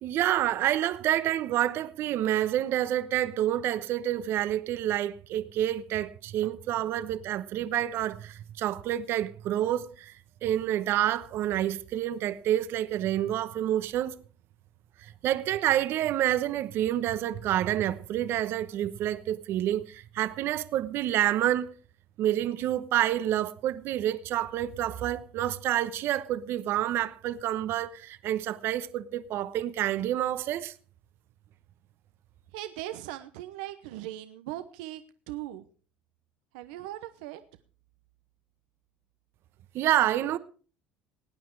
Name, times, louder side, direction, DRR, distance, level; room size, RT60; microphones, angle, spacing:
voice 1, 0.0-10.2 10.4-14.2 15.2-21.7 22.2-30.7 39.7-40.4, right 12 dB, 60° right, 1.0 m, -28 dB
voice 2, 32.5-35.0 35.3-35.6 36.5-37.4, right 14 dB, 80° right, 0.9 m, -39 dB
18.0 x 9.5 x 4.7 m
supercardioid pair, 85°, 5 cm